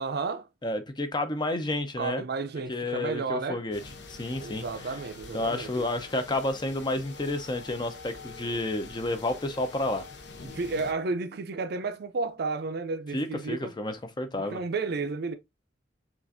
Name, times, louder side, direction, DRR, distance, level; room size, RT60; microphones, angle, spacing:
voice 1, 0.0-0.5 2.0-3.6 4.4-5.9 10.4-13.7 14.4-15.3, right 4 dB, 55° right, 0.5 m, -32 dB
voice 2, 0.6-2.2 2.7-3.8 4.1-4.9 5.3-10.0 13.1-14.6, left 2 dB, 25° left, 0.5 m, -30 dB
sound 1, 3.7-10.9, left 4 dB, 65° left, 0.8 m, -45 dB
5.8 x 2.5 x 2.6 m
head